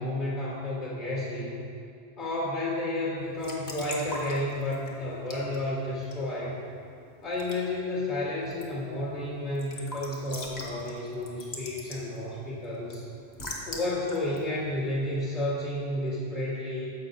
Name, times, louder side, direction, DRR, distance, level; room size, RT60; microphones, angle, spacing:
voice 1, 0.0-1.6 2.2-6.6 7.2-13.0 13.6-16.9, left 1 dB, 80° left, -11 dB, 2.2 m, -31 dB
Raindrop / Drip / Trickle dribble, 3.2-15.6, left 1 dB, 40° left, 1.0 m, -44 dB
14.0 x 5.3 x 2.7 m, 2.5 s
omnidirectional pair, 1.2 m